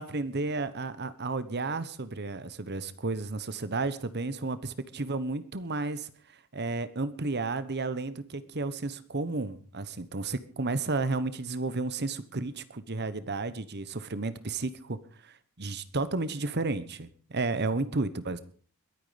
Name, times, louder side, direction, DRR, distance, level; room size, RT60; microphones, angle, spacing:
voice 1, 0.0-18.4, right 3 dB, 50° right, 14 dB, 1.1 m, -32 dB
22.0 x 9.6 x 5.2 m, 0.44 s
head